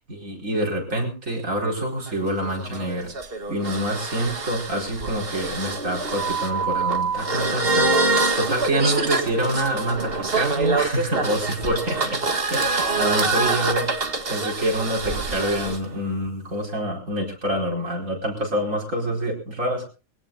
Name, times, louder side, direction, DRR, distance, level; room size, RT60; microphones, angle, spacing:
voice 1, 0.1-3.1 3.5-12.2 12.5-19.8, right 1 dB, 60° right, 0 dB, 5.1 m, -26 dB
sound 1, 2.1-15.8, right 3 dB, 40° right, 1.9 m, -25 dB
23.0 x 17.0 x 2.5 m, 0.33 s
omnidirectional pair, 1.5 m